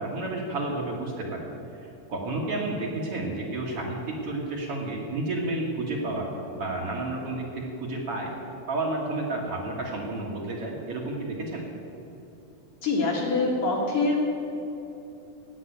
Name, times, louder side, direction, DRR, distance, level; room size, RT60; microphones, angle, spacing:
voice 1, 0.0-1.5 2.1-6.3 6.5-8.3 8.7-11.7, right 2 dB, 50° right, -2 dB, 2.2 m, -31 dB
voice 2, 12.8-14.2, left 3 dB, 50° left, -2 dB, 2.2 m, -24 dB
16.0 x 5.9 x 9.2 m, 2.9 s
omnidirectional pair, 3.7 m